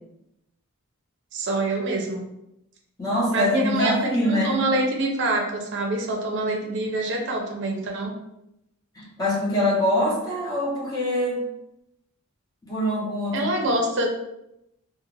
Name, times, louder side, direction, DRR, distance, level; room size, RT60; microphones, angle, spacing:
voice 1, 1.3-2.2 3.3-3.9 4.2-8.1 13.3-14.1, right 2 dB, 55° right, 1 dB, 0.6 m, -25 dB
voice 2, 3.0-4.6 8.9-11.4 12.6-13.5, left 1 dB, 15° left, -7 dB, 1.0 m, -24 dB
2.5 x 2.4 x 3.1 m, 0.84 s
head